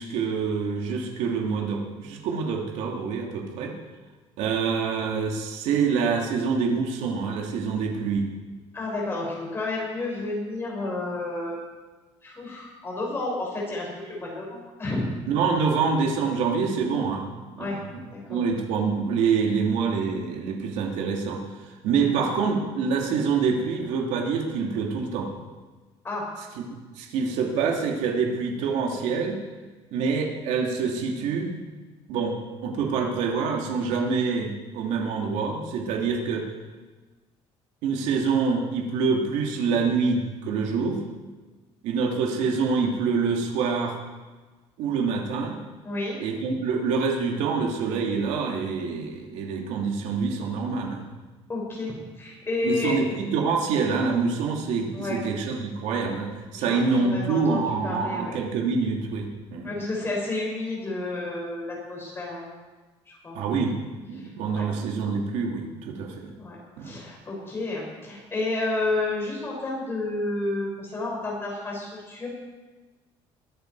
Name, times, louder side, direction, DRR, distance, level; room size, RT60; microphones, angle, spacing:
voice 1, 0.0-3.7 4.4-8.3 15.3-17.3 17.6-18.0 18.3-21.5 21.8-25.3 26.6-26.7 27.0-29.4 29.9-31.6 32.1-36.5 37.8-41.0 41.8-44.0 44.8-45.6 46.2-51.0 52.6-59.7 63.3-66.3 66.8-66.9, right 5 dB, 80° right, 1 dB, 2.6 m, -26 dB
voice 2, 8.7-11.6 12.2-15.0 17.6-17.8 18.1-18.4 22.0-22.3 26.0-26.3 45.8-46.2 51.5-53.0 54.9-55.2 56.5-58.4 59.6-62.5 63.1-63.4 64.2-64.6 66.4-66.6 66.8-72.3, left 2 dB, 20° left, -3 dB, 6.2 m, -31 dB
22.0 x 11.0 x 4.8 m, 1.3 s
cardioid pair, 160°, 12 cm